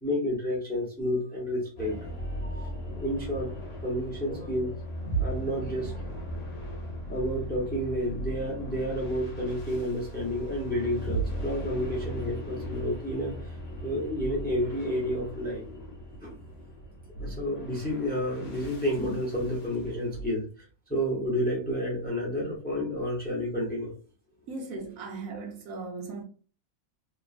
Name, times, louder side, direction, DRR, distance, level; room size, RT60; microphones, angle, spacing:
voice 1, 0.0-3.6 3.8-4.7 5.2-6.1 6.7-6.8 7.1-13.4 13.8-15.6 16.2-16.3 17.2-20.4 20.9-23.9, equal, 10° left, 0.6 m, -30 dB
sound 1, 1.8-20.3, right 1 dB, 50° left, 1.0 m, -37 dB
voice 2, 24.5-26.2, right 3 dB, 75° right, 1.2 m, -37 dB
3.0 x 2.2 x 2.4 m
omnidirectional pair, 1.5 m